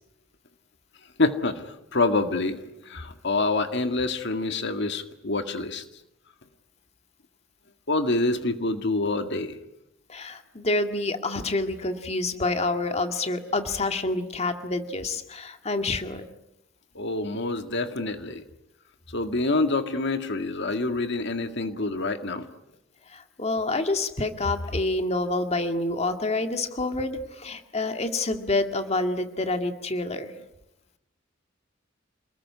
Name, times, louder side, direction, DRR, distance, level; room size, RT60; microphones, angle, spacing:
voice 1, 1.2-1.6 1.9-5.8 7.9-9.6 17.0-18.4 19.1-22.5, left 2 dB, 60° left, 7 dB, 1.9 m, -26 dB
voice 2, 10.1-16.3 23.1-30.3, left 2 dB, 35° left, 6 dB, 2.0 m, -28 dB
28.0 x 20.5 x 9.6 m, 0.87 s
head